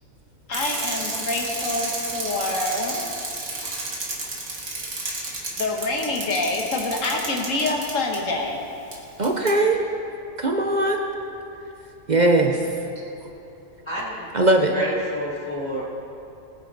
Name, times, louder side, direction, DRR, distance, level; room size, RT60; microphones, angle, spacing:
voice 1, 0.5-3.0 5.5-8.6, left 2 dB, 65° left, 1 dB, 1.8 m, -26 dB
Bicycle, 0.5-8.2 8.9-9.0 9.2-9.5, right 2 dB, 75° right, 2.2 m, -31 dB
voice 2, 9.2-9.8 10.4-11.0 12.1-12.6 14.3-14.8, right 2 dB, 40° right, 3 dB, 0.8 m, -19 dB
voice 3, 13.9-14.3 14.7-15.8, equal, 20° left, -10 dB, 2.0 m, -30 dB
20.0 x 9.7 x 4.0 m, 2.8 s
omnidirectional pair, 1.5 m